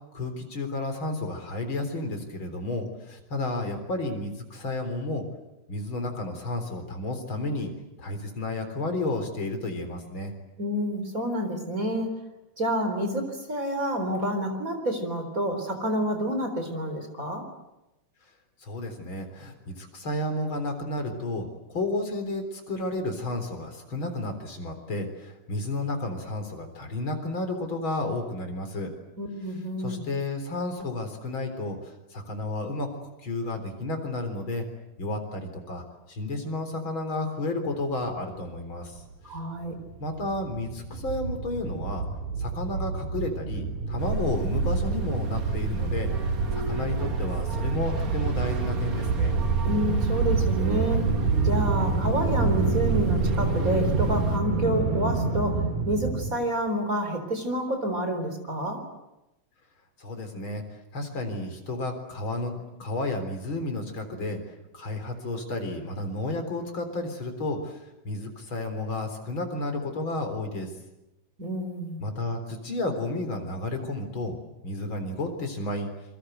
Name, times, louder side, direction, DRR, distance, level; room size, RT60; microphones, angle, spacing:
voice 1, 0.1-5.2 5.7-7.7 8.0-10.3 18.6-28.9 29.8-34.6 35.0-39.0 40.0-42.0 42.4-49.4 60.0-60.6 60.9-64.4 64.7-67.8 68.0-70.7 72.0-74.4 74.6-75.9, left 2 dB, 35° left, 6 dB, 4.3 m, -32 dB
voice 2, 10.6-12.2 12.6-17.4 29.2-30.1 39.2-39.8 49.6-51.1 51.4-58.8 71.4-72.0, equal, 25° right, 6 dB, 4.2 m, -29 dB
sound 1, 39.0-39.1 39.4-39.5 39.7-56.3, right 4 dB, 75° right, 3.9 m, -27 dB
sound 2, 44.0-54.4, right 4 dB, 55° right, 0.9 m, -32 dB
27.5 x 23.5 x 8.1 m, 0.95 s
omnidirectional pair, 3.8 m